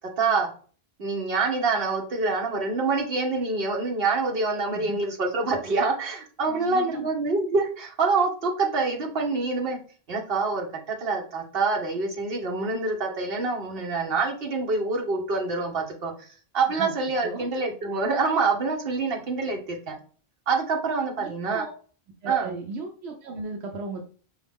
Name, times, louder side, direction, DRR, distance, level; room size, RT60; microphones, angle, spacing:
voice 1, 0.2-0.5 1.0-9.8 10.1-16.3 16.5-20.0 20.5-21.6 22.3-22.6, right 4 dB, 60° right, 1 dB, 1.2 m, -26 dB
voice 2, 6.5-7.1 16.8-16.9 17.2-17.5 21.2-21.7 22.2-24.0, right 3 dB, 85° right, 2 dB, 0.9 m, -36 dB
5.0 x 2.4 x 3.5 m, 0.41 s
omnidirectional pair, 1.1 m